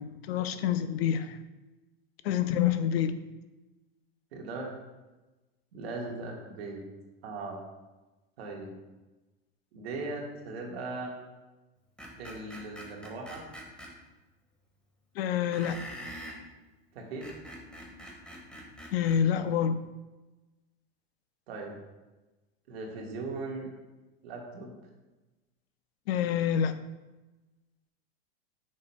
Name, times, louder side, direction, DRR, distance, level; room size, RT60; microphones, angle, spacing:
voice 1, 0.0-1.4 2.2-3.2 15.2-15.8 18.9-19.8 26.1-26.7, left 9 dB, 85° left, 11 dB, 0.6 m, -27 dB
voice 2, 4.3-4.7 5.7-6.8 7.2-7.6 8.4-8.7 9.7-11.1 12.2-13.5 16.9-17.3 21.5-21.7 22.7-23.7 24.2-24.7, right 3 dB, 85° right, 0 dB, 1.6 m, -38 dB
Screech, 12.0-13.9 15.5-16.4 17.0-19.2, equal, 5° left, 1.4 m, -44 dB
8.5 x 6.3 x 2.2 m, 1.1 s
supercardioid pair, 120°, 30 cm